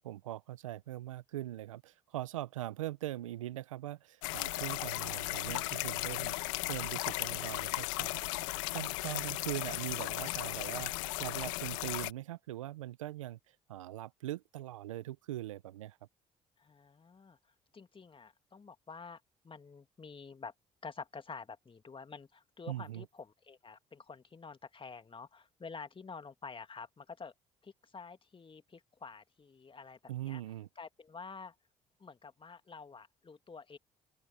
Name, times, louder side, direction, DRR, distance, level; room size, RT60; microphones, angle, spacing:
voice 1, 0.0-13.4 13.7-16.0 22.7-23.1 30.1-30.7, right 14 dB, 90° right, 1.0 m, -41 dB
sound 1, 4.2-12.1, left 24 dB, 80° left, 1.5 m, -36 dB
voice 2, 5.1-5.5 16.6-17.4 17.7-19.2 19.4-20.5 20.8-27.3 27.6-30.0 30.2-30.4 30.8-31.5 32.0-33.8, left 5 dB, 30° left, 2.3 m, -49 dB
open air
hypercardioid pair, 50°, 16 cm